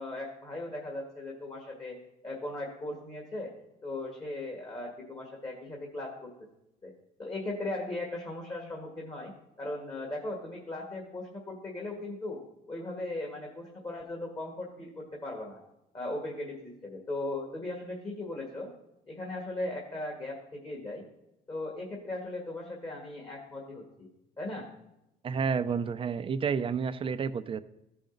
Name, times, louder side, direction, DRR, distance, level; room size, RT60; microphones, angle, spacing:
voice 1, 0.0-2.0 2.2-3.5 3.8-6.3 6.8-6.9 7.2-9.3 9.6-12.4 12.7-15.6 15.9-18.7 19.1-21.0 21.5-24.1 24.4-24.7, left 2 dB, 25° left, -1 dB, 1.7 m, -38 dB
voice 2, 25.2-27.6, right 6 dB, 30° right, 12 dB, 0.5 m, -30 dB
14.5 x 5.1 x 3.9 m, 0.87 s
cardioid pair, 110°, 17 cm